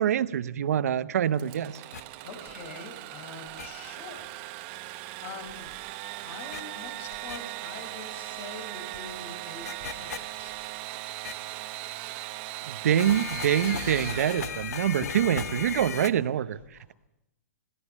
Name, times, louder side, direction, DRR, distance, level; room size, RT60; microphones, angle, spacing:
voice 1, 0.0-1.8 12.6-16.9, right 10 dB, 70° right, 14 dB, 0.9 m, -26 dB
Engine / Sawing, 1.4-15.1, right 17 dB, 40° right, 1.1 m, -39 dB
sound 1, 1.9-2.0 3.6-3.7 6.5-6.6 7.3-7.4 9.7-10.2 11.2-11.3 13.0-16.1, left 7 dB, 75° left, 1.4 m, -35 dB
voice 2, 2.2-5.7 6.2-10.6 16.8-16.9, left 4 dB, 50° left, 7 dB, 4.9 m, -45 dB
21.5 x 16.5 x 8.1 m, 0.87 s
hypercardioid pair, 130°, 9 cm